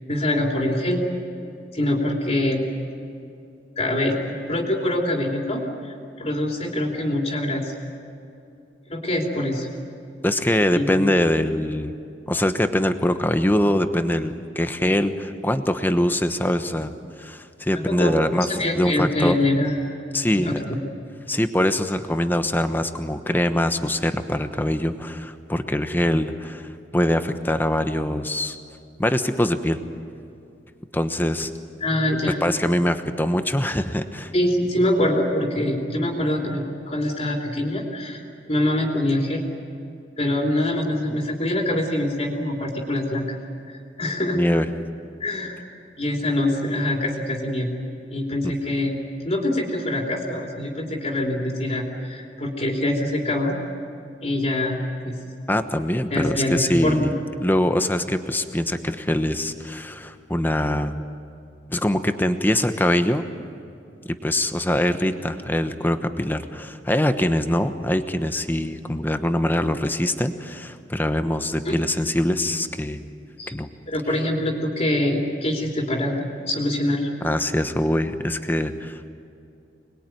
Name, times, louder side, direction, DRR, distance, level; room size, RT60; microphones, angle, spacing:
voice 1, 0.1-1.0 1.7-2.6 3.8-7.7 8.9-9.7 10.7-11.1 17.8-18.1 18.5-19.8 20.4-20.5 31.8-32.4 34.3-39.4 40.2-43.4 44.0-44.4 45.2-45.6 46.0-47.8 48.1-48.9 49.2-53.6 54.2-54.8 55.0-55.2 56.1-57.1 71.6-71.7 73.4-73.5 73.9-77.1, left 1 dB, 35° left, 0 dB, 3.2 m, -24 dB
voice 2, 10.2-11.9 12.3-19.4 20.1-20.6 21.3-28.6 29.0-29.8 30.9-31.5 32.4-34.3 44.3-44.7 48.4-48.5 55.5-57.1 57.4-60.9 61.7-63.3 64.2-73.0 73.5-73.7 77.2-79.1, left 1 dB, 10° left, 9 dB, 1.1 m, -23 dB
25.5 x 21.0 x 9.3 m, 2.6 s
head